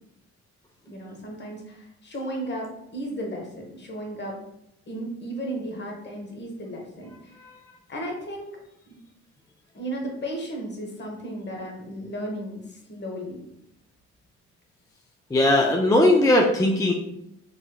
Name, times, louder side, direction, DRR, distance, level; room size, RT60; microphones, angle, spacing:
voice 1, 0.9-4.4 4.9-7.1 7.9-8.5 8.9-9.0 9.7-13.4, right 1 dB, 35° left, 1 dB, 1.0 m, -34 dB
voice 2, 15.3-16.9, left 1 dB, 10° left, 0 dB, 0.3 m, -19 dB
3.3 x 3.1 x 2.3 m, 0.81 s
cardioid pair, 90°, 30 cm